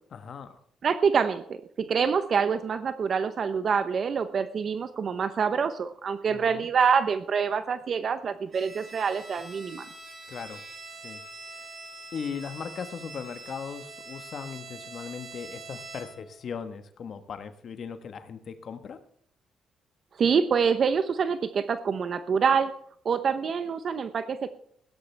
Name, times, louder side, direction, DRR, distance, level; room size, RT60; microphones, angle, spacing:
voice 1, 0.1-0.6 6.3-6.7 10.3-10.6 11.0-11.2 12.1-19.0, left 6 dB, 55° left, 9 dB, 1.3 m, -38 dB
voice 2, 0.8-9.8 20.2-22.7 23.0-24.5, right 6 dB, 50° right, 11 dB, 0.8 m, -26 dB
Bowed string instrument, 8.5-16.3, right 3 dB, 35° right, 4.2 m, -44 dB
16.5 x 13.0 x 3.4 m, 0.66 s
cardioid pair, 90°, 0 cm